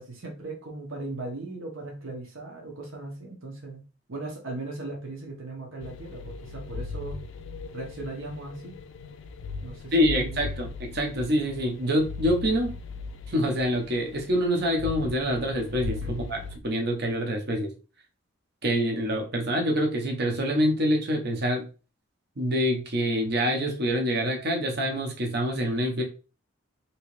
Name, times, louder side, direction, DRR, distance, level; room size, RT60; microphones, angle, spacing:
voice 1, 0.0-3.8 4.1-7.2 7.7-8.8 9.6-10.5 16.0-16.2, right 2 dB, 75° right, 0 dB, 1.0 m, -38 dB
sound 1, 5.8-16.6, left 4 dB, 65° left, 0.3 m, -38 dB
voice 2, 9.9-12.7 13.3-17.7 18.6-21.6 22.4-26.0, equal, 50° right, 2 dB, 0.7 m, -26 dB
3.0 x 2.8 x 3.0 m, 0.34 s
head